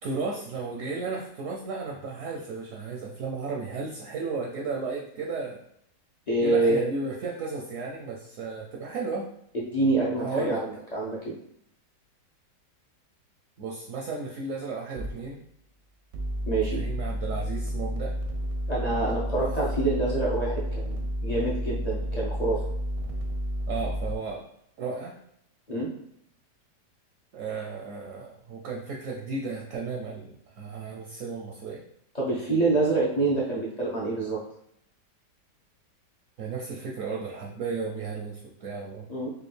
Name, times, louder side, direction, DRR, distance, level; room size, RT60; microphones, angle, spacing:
voice 1, 0.0-5.6 6.4-9.3 10.2-10.6 13.6-15.4 16.7-18.1 23.7-24.5 24.8-25.2 27.3-31.8 36.4-39.1, right 4 dB, 70° right, -1 dB, 0.8 m, -34 dB
voice 2, 6.3-6.8 9.5-10.7 10.9-11.4 16.5-16.8 18.7-22.6 25.7-25.9 32.1-34.4 39.1-39.3, right 2 dB, 60° left, -6 dB, 0.4 m, -26 dB
sound 1, 15.0-15.1 16.1-24.1, equal, 85° right, 1.3 m, -31 dB
4.8 x 2.2 x 3.3 m, 0.71 s
omnidirectional pair, 1.8 m